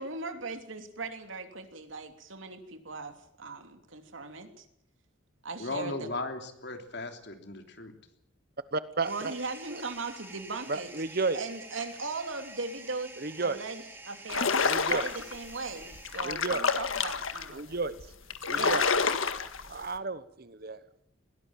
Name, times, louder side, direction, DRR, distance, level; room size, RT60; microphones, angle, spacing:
voice 1, 0.0-4.6 5.4-6.1 9.0-10.9 11.3-13.1 13.4-17.6 18.5-18.8, right 3 dB, 75° right, 7 dB, 3.0 m, -38 dB
voice 2, 5.6-7.9, left 2 dB, 55° left, 6 dB, 3.2 m, -37 dB
voice 3, 8.7-9.3 9.7-9.8 10.7-11.4 13.2-13.6 14.5-15.1 16.2-16.6 17.5-18.0 18.4-18.9 19.7-21.0, right 3 dB, 50° right, 14 dB, 1.0 m, -33 dB
sound 1, 9.0-16.7, right 2 dB, 10° right, 3.9 m, -49 dB
sound 2, 14.3-15.3 15.9-17.5 18.0-18.1 18.3-19.7, left 5 dB, 90° left, 1.8 m, -28 dB
21.0 x 17.5 x 9.0 m, 0.74 s
head